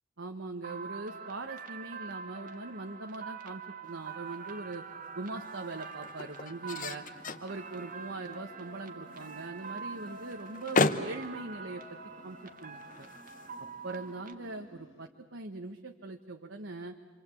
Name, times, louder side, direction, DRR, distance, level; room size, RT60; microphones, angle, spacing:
voice 1, 0.2-4.8 5.1-7.0 7.4-13.1 13.8-17.0, right 2 dB, 65° right, 4 dB, 1.3 m, -41 dB
sound 1, 0.6-14.3, right 5 dB, 45° right, 1.6 m, -45 dB
sound 2, 3.8-14.2, left 3 dB, 40° left, 1.0 m, -37 dB
sound 3, 6.5-15.1, right 1 dB, 85° left, 3.1 m, -58 dB
26.5 x 26.5 x 8.5 m, 1.4 s
head